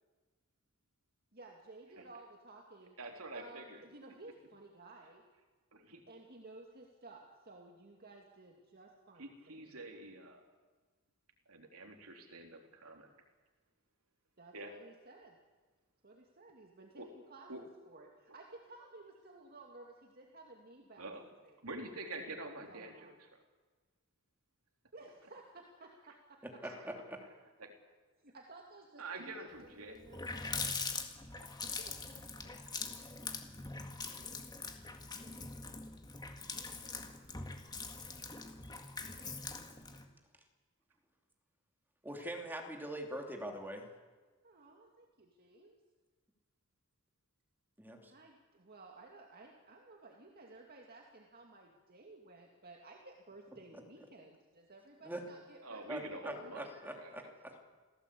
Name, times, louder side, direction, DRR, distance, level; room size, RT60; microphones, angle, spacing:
voice 1, 1.3-3.0 3.3-5.2 6.1-10.0 14.4-15.4 16.0-21.1 21.4-21.6 22.7-23.2 24.9-26.6 28.2-30.6 31.8-32.5 44.4-45.8 48.1-56.6, right 2 dB, 45° right, 1 dB, 2.3 m, -56 dB
voice 2, 3.0-3.8 5.7-6.0 9.2-10.4 11.5-13.1 14.5-14.7 17.0-17.1 17.5-17.6 21.0-21.3 21.6-23.4 26.6-26.9 27.6-27.7 29.0-30.0 30.6-30.7 31.3-31.5 55.6-57.3, right 2 dB, 80° right, 3 dB, 3.2 m, -47 dB
voice 3, 26.4-27.2 42.0-43.9 47.8-48.1 55.0-55.2 55.9-57.5, right 1 dB, 10° right, 3 dB, 2.7 m, -43 dB
Water tap faucet, 29.6-29.7 29.9-40.0, left 4 dB, 20° left, 1.9 m, -43 dB
27.0 x 16.5 x 8.5 m, 1.4 s
head